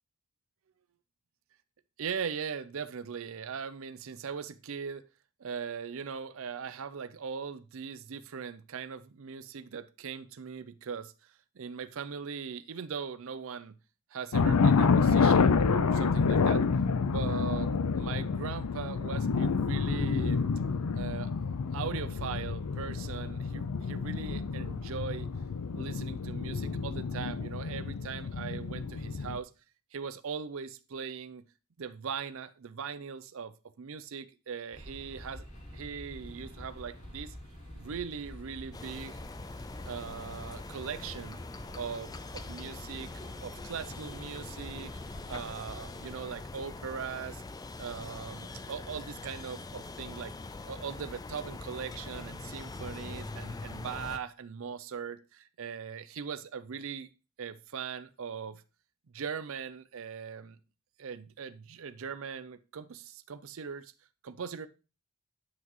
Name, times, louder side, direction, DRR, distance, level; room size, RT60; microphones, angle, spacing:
voice 1, 2.0-5.0 5.4-11.1 11.6-13.7 14.1-16.7 17.0-20.4 21.0-21.3 21.7-25.3 25.7-29.5 29.9-31.4 31.8-35.4 35.7-37.3 37.7-39.2 39.8-41.4 41.7-44.9 45.3-47.4 47.8-50.3 50.6-57.1 57.4-58.6 59.1-60.6 61.0-63.9 64.2-64.7, right 6 dB, 65° right, 0.5 m, -40 dB
sound 1, 14.3-29.4, left 5 dB, 90° left, 0.5 m, -28 dB
sound 2, 34.7-46.2, left 1 dB, 35° left, 3.4 m, -47 dB
sound 3, 38.7-54.2, left 3 dB, 15° left, 0.3 m, -43 dB
9.5 x 5.9 x 3.0 m
head